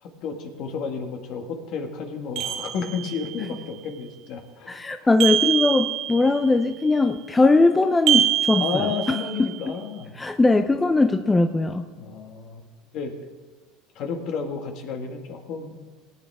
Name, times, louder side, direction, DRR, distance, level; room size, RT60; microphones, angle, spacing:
voice 1, 0.0-5.1 8.6-10.1 12.0-12.6 12.9-13.2 14.0-15.8, left 5 dB, 55° left, 4 dB, 1.9 m, -32 dB
sound 1, 2.3-3.4 5.2-6.5 8.1-9.6, right 11 dB, 55° right, 2.2 m, -25 dB
voice 2, 4.7-9.5 10.2-11.9, left 3 dB, 15° left, 7 dB, 0.6 m, -20 dB
18.5 x 9.2 x 3.6 m, 1.4 s
supercardioid pair, 110°, 0 cm